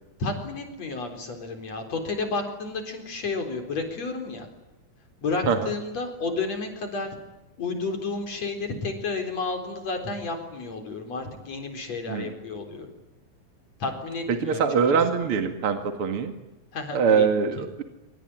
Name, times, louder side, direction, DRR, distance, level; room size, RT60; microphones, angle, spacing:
voice 1, 0.2-4.5 5.2-7.1 7.6-12.9 13.8-14.6 16.7-17.3, left 3 dB, 60° left, 5 dB, 5.1 m, -31 dB
voice 2, 14.3-16.3 16.9-17.8, right 6 dB, 50° right, 7 dB, 2.8 m, -23 dB
26.0 x 25.5 x 9.1 m, 1.0 s
omnidirectional pair, 3.5 m